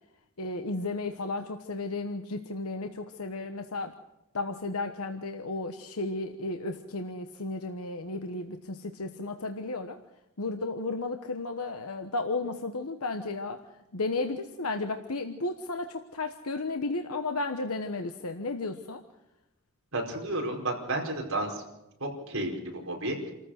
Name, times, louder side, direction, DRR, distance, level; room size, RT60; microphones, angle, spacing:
voice 1, 0.4-3.9 4.3-10.0 10.4-13.6 13.9-19.0, left 3 dB, 85° left, 6 dB, 1.2 m, -33 dB
voice 2, 19.9-21.6 22.0-23.3, right 1 dB, 70° right, 1 dB, 4.8 m, -32 dB
28.0 x 14.5 x 6.5 m, 0.93 s
head